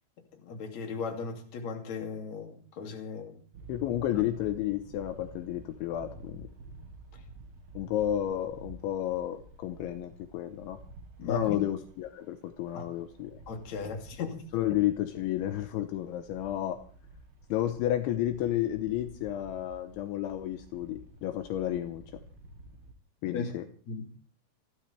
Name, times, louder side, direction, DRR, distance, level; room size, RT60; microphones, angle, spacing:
voice 1, 0.3-3.4 11.2-11.6 12.7-12.9 13.5-14.4 23.3-23.5 23.9-24.0, left 5 dB, 45° left, 3.1 m, -36 dB
sound 1, 3.5-22.9, right 2 dB, 65° right, 1.7 m, -51 dB
voice 2, 3.7-6.5 7.7-10.8 11.3-13.4 14.5-16.8 17.5-22.0 23.2-23.7, left 12 dB, 80° left, 3.1 m, -31 dB
28.0 x 12.5 x 3.4 m
omnidirectional pair, 5.6 m